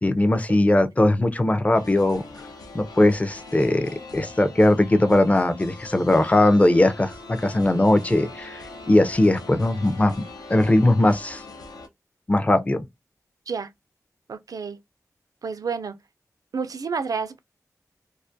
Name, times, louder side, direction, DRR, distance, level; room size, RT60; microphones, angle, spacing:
voice 1, 0.0-2.2 2.7-10.2 10.5-11.4 12.3-12.9, left 1 dB, 20° left, 0.4 m, -20 dB
sound 1, 1.7-11.9, left 2 dB, 85° left, 0.5 m, -42 dB
voice 2, 14.3-14.8 15.4-16.0 16.5-17.4, right 5 dB, 65° right, 0.4 m, -29 dB
2.3 x 2.1 x 2.5 m
cardioid pair, 45°, 7 cm